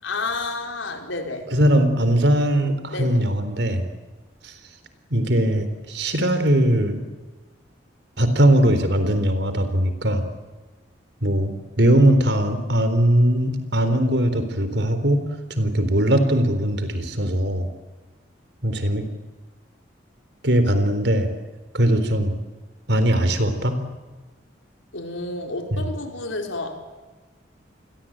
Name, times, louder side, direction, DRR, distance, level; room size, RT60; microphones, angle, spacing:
voice 1, 0.0-1.5 2.9-3.2 24.9-26.8, left 3 dB, 90° left, 4 dB, 4.7 m, -30 dB
voice 2, 1.5-3.9 4.4-4.5 5.1-7.0 8.2-10.2 11.2-17.7 18.6-19.1 20.4-21.3 21.7-22.3 22.9-23.8 25.7-25.8, right 1 dB, 65° right, 10 dB, 4.0 m, -20 dB
28.5 x 21.0 x 8.9 m, 1.2 s
head